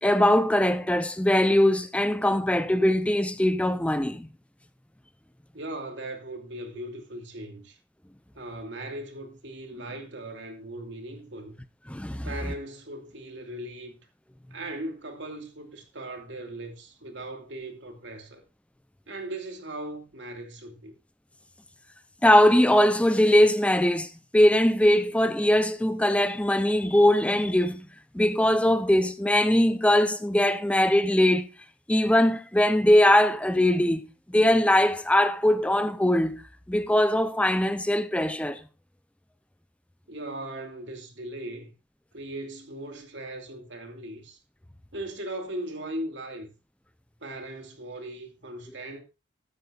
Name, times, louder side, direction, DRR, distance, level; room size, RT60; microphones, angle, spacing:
voice 1, 0.0-4.3 11.9-12.3 22.2-27.9 28.1-31.5 31.9-36.4 36.7-38.6, left 1 dB, 5° left, 0.5 m, -21 dB
voice 2, 5.5-7.8 8.3-11.6 12.2-14.0 14.5-18.4 19.1-20.9 40.1-41.7 42.1-44.4 44.9-46.5 47.2-49.0, right 1 dB, 70° right, 2.7 m, -38 dB
13.0 x 12.5 x 2.4 m
head